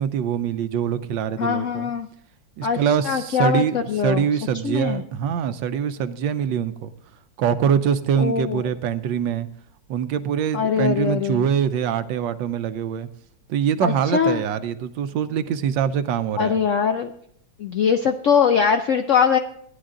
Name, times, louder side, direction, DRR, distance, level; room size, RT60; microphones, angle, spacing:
voice 1, 0.0-1.9 2.6-3.8 4.0-6.9 7.4-9.5 9.9-13.1 13.5-16.6, right 8 dB, 80° right, 1.4 m, -24 dB
voice 2, 1.4-2.1 2.6-4.3 4.6-5.0 8.2-8.6 10.5-11.5 13.8-14.4 16.4-17.1 17.6-19.4, left 7 dB, 75° left, 0.7 m, -21 dB
15.0 x 10.0 x 3.8 m
omnidirectional pair, 2.0 m